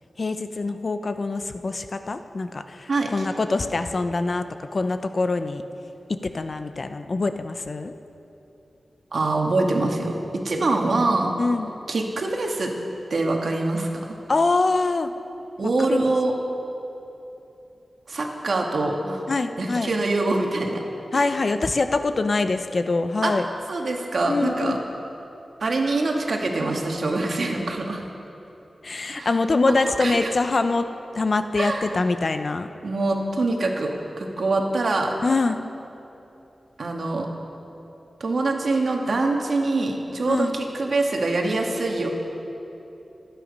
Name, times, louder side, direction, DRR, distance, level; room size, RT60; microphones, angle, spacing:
voice 1, 0.2-5.6 6.2-7.9 11.4-11.8 14.3-15.1 15.9-16.1 19.3-19.9 21.1-23.5 24.2-24.8 28.8-30.9 31.1-32.7 35.2-35.6 40.3-40.5, left 3 dB, 50° left, 9 dB, 0.7 m, -24 dB
voice 2, 2.9-3.3 9.1-11.3 11.9-12.7 13.1-14.2 15.6-16.3 18.1-19.2 19.6-20.8 21.1-21.4 23.2-23.3 23.7-24.8 25.6-28.0 29.1-29.3 29.7-30.3 31.6-31.9 32.8-35.2 36.8-37.3 38.2-42.1, right 2 dB, 70° right, 1 dB, 1.8 m, -24 dB
26.0 x 9.1 x 5.3 m, 3.0 s
wide cardioid pair, 90°, 0 cm